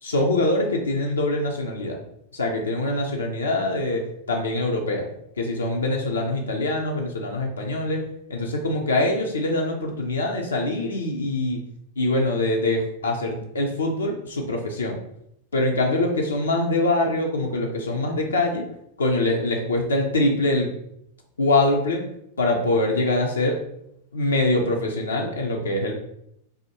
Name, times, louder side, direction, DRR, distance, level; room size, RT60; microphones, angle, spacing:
voice 1, 0.0-2.0 2.3-5.1 5.4-11.6 12.0-15.0 15.5-18.6 19.0-20.7 21.4-22.0 22.4-23.6 24.1-25.9, left 2 dB, 70° left, 1 dB, 0.4 m, -24 dB
3.4 x 2.2 x 2.8 m, 0.76 s
figure-of-eight pair, 90°, 0 cm